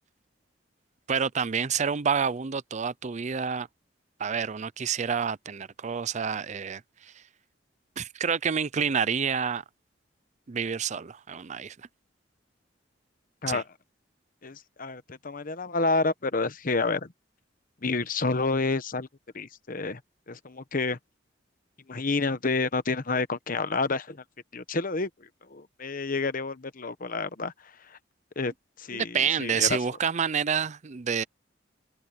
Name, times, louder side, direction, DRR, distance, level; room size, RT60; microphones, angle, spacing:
voice 1, 1.1-3.7 4.2-7.1 8.0-9.6 10.5-11.8 13.5-13.6 28.9-31.2, right 6 dB, 40° right, 0.5 m, -28 dB
voice 2, 14.4-17.1 17.8-19.1 19.3-20.0 20.3-21.0 21.9-24.2 24.5-25.1 25.5-27.5 28.4-28.5 28.8-29.1 29.4-29.8, left 3 dB, 50° left, 1.1 m, -29 dB
head